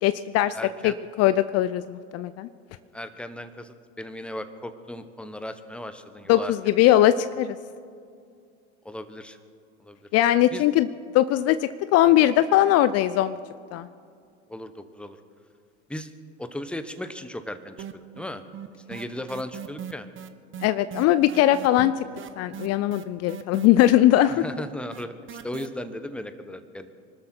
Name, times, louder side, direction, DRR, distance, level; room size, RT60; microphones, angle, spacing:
voice 1, 0.0-0.6 0.8-2.5 6.3-7.6 10.1-10.9 11.1-13.4 13.7-13.9 20.6-21.9 22.4-24.4, left 13 dB, 45° left, 14 dB, 0.6 m, -20 dB
voice 2, 0.5-0.9 2.9-6.7 8.8-9.4 9.8-10.0 10.5-10.6 14.5-15.2 15.9-16.1 16.4-18.4 18.9-20.1 24.3-26.9, left 1 dB, 5° left, 10 dB, 1.1 m, -36 dB
sound 1, 17.8-18.3 18.5-25.7, right 9 dB, 35° right, 1.0 m, -39 dB
24.5 x 13.0 x 4.5 m, 2.3 s
hypercardioid pair, 80°, 35 cm